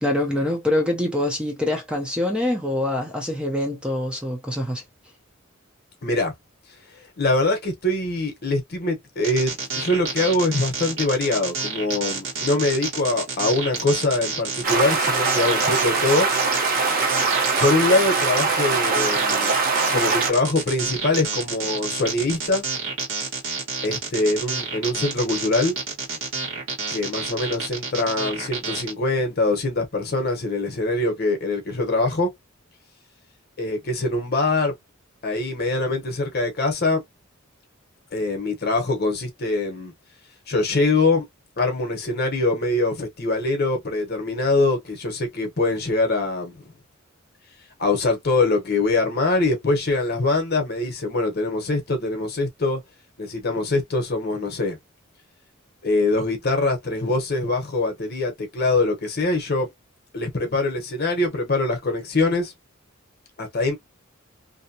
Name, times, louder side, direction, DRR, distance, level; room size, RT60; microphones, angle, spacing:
voice 1, 0.0-4.8, left 1 dB, 5° right, 0.5 m, -24 dB
voice 2, 6.0-6.3 7.2-16.3 17.6-19.5 19.9-22.6 23.8-25.7 26.9-32.3 33.6-34.7 35.2-37.0 38.1-39.9 40.5-41.2 41.6-46.7 47.8-52.8 53.2-54.8 55.8-59.7 60.1-62.5 63.4-63.7, left 2 dB, 50° left, 0.9 m, -23 dB
sound 1, 9.2-28.9, right 4 dB, 65° right, 1.4 m, -29 dB
sound 2, 14.6-20.3, right 4 dB, 45° right, 0.7 m, -22 dB
2.7 x 2.1 x 2.7 m
head